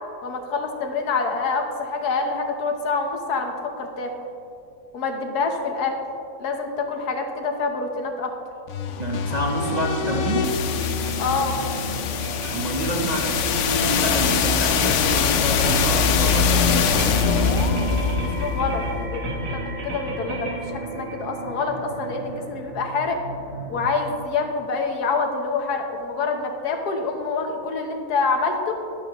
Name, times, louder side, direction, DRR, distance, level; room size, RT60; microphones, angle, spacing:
voice 1, 0.2-4.1 4.9-6.0 6.4-8.3 11.2-11.6 18.4-23.2 23.7-28.7, left 4 dB, 80° left, 4 dB, 1.6 m, -26 dB
sound 1, 8.7-20.6, left 6 dB, 65° left, 0.8 m, -23 dB
voice 2, 9.0-10.6 12.5-17.3, right 1 dB, 35° right, -1 dB, 0.7 m, -27 dB
sound 2, 10.0-23.9, right 2 dB, 60° right, 1.5 m, -33 dB
12.5 x 11.0 x 3.0 m, 2.6 s
omnidirectional pair, 1.6 m